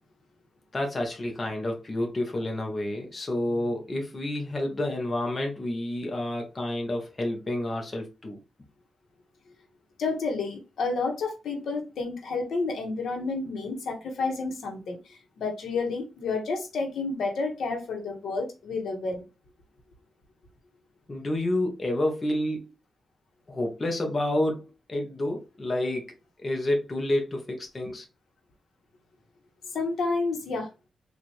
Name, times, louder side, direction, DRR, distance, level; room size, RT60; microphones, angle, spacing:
voice 1, 0.7-8.4 21.1-22.7 23.5-24.6 24.9-26.0 26.4-28.0, left 1 dB, 25° left, 0.8 m, -29 dB
voice 2, 10.0-19.2 29.7-30.7, left 3 dB, 75° left, 1.1 m, -30 dB
4.3 x 2.5 x 3.1 m
wide cardioid pair, 155°, 0 cm